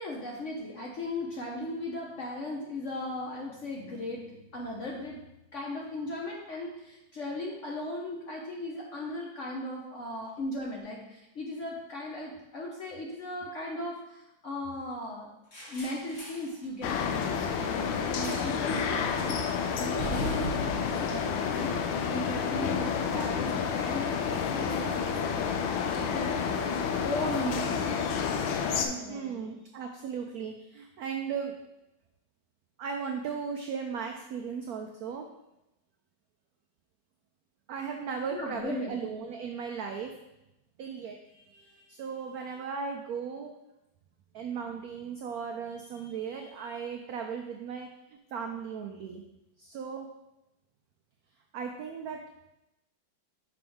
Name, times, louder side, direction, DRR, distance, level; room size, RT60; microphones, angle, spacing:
voice 1, 0.0-4.2 4.5-5.2 5.5-15.3 15.7-19.4 19.7-25.5 25.9-26.3 27.0-29.4 38.3-39.0, left 1 dB, 60° left, -2 dB, 0.8 m, -37 dB
sound 1, 15.5-16.5 18.2-18.6 18.9-19.2 20.0-22.3, left 1 dB, 35° left, 1.7 m, -38 dB
sound 2, 16.8-28.9, left 6 dB, 85° left, 1.4 m, -30 dB
voice 2, 29.1-31.5 32.8-35.2 37.7-40.1 40.8-43.5 44.3-49.2 49.6-50.1 51.5-52.2, right 6 dB, 90° right, 3 dB, 0.8 m, -37 dB
6.0 x 4.9 x 3.5 m, 0.92 s
omnidirectional pair, 2.1 m